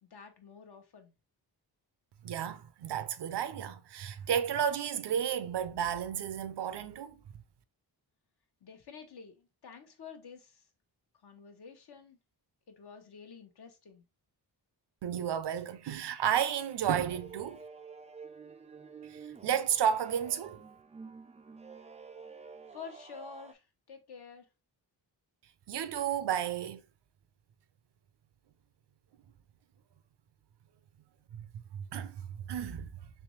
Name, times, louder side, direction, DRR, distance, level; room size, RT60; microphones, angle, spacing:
voice 1, 0.0-1.1 8.6-10.6 11.2-12.2 12.7-14.0 22.7-24.5, left 6 dB, 60° left, 1.0 m, -49 dB
voice 2, 2.2-7.2 15.0-17.6 19.1-20.6 25.7-26.8 31.3-31.4 31.7-32.9, right 9 dB, 65° right, 0.6 m, -32 dB
sound 1, 17.1-23.5, right 5 dB, 15° right, 0.3 m, -49 dB
3.4 x 3.1 x 3.0 m
cardioid pair, 80°, 44 cm